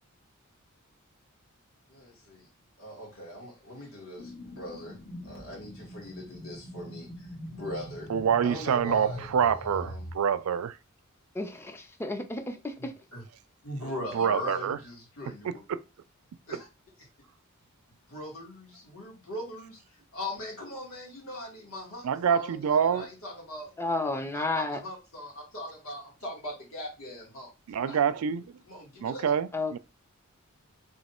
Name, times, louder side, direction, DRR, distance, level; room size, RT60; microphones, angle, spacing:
voice 1, 1.9-2.5 2.8-5.0 5.2-8.1 8.4-10.1 12.8-13.2 13.6-15.6 16.5-16.7 18.1-23.7 24.3-27.5 27.8-28.0 28.6-29.2, left 1 dB, 65° left, 2.0 m, -40 dB
sound 1, 4.2-10.1, left 1 dB, 85° left, 1.6 m, -43 dB
voice 2, 8.1-10.8 14.1-14.8 22.0-23.1 27.7-28.4 29.0-29.8, right 7 dB, 70° right, 0.4 m, -26 dB
voice 3, 11.4-12.9 23.8-24.8 29.5-29.8, left 2 dB, 10° left, 0.4 m, -32 dB
3.1 x 2.6 x 4.2 m
head